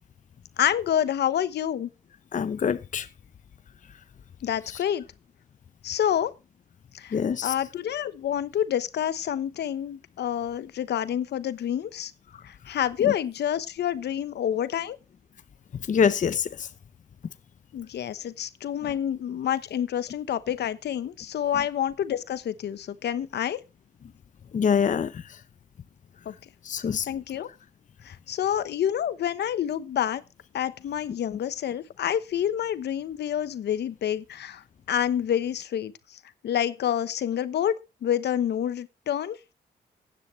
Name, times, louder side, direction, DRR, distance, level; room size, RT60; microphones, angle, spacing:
voice 1, 0.6-1.9 4.4-5.0 5.8-6.3 6.9-12.1 12.4-15.0 17.7-23.6 26.2-26.3 27.1-27.5 28.0-30.2 30.5-37.7 38.0-39.4, left 10 dB, 80° left, 1.1 m, -28 dB
voice 2, 2.3-3.1 4.7-4.8 7.1-7.5 12.3-12.4 13.0-13.1 15.8-16.7 21.5-21.6 24.5-25.4 26.6-27.1, left 7 dB, 50° left, 0.7 m, -25 dB
15.5 x 10.0 x 3.2 m
cardioid pair, 80°, 17 cm